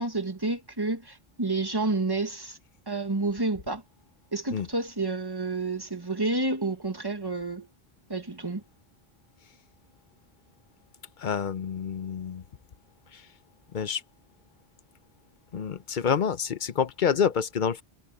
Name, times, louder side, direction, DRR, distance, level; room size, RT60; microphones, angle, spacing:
voice 1, 0.0-2.6 2.9-3.8 4.3-7.7 8.1-8.6, right 2 dB, 20° right, 1.6 m, -29 dB
voice 2, 11.2-12.4 13.1-13.3 13.7-14.0 15.5-17.8, left 7 dB, 55° left, 0.9 m, -28 dB
omnidirectional pair, 1.1 m